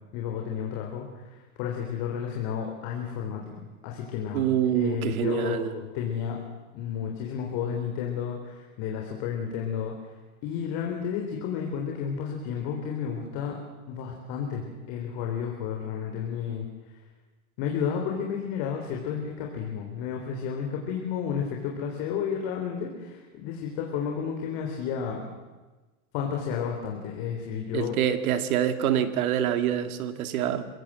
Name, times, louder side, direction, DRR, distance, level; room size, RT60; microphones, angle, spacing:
voice 1, 0.1-1.1 1.6-4.5 4.7-6.4 6.7-9.9 10.4-13.6 13.9-14.6 14.9-16.7 17.6-25.2 26.1-28.0, left 7 dB, 60° left, 1 dB, 4.0 m, -32 dB
voice 2, 4.3-5.7 27.7-30.7, right 10 dB, 90° right, 10 dB, 2.1 m, -26 dB
29.0 x 17.5 x 7.6 m, 1.2 s
supercardioid pair, 135°, 42 cm